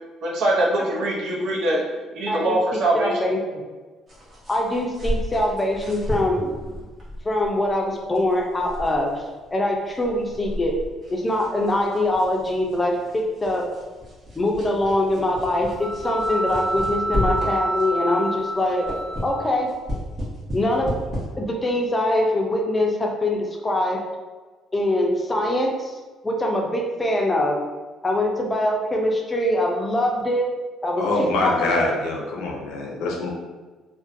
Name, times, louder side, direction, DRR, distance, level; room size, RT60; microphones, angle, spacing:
voice 1, 0.2-1.9 2.1-3.3, right 1 dB, 70° right, -3 dB, 0.6 m, -22 dB
voice 2, 2.3-3.6 4.5-6.5 7.2-9.1 9.5-10.8 11.1-13.7 14.4-18.9 19.2-19.7 20.5-20.9 21.4-24.0 24.7-25.9 26.2-27.6 28.0-30.5 30.8-31.0 31.4-31.9, left 1 dB, 20° left, 0 dB, 0.5 m, -23 dB
sound 1, 4.1-18.0 18.4-21.2, left 1 dB, 40° right, 1.0 m, -33 dB
sound 2, 15.8-19.9, right 1 dB, 20° right, 1.2 m, -28 dB
voice 3, 31.0-33.3, left 2 dB, 85° left, -1 dB, 0.5 m, -24 dB
2.4 x 2.1 x 2.5 m, 1.3 s
cardioid pair, 95°, 0 cm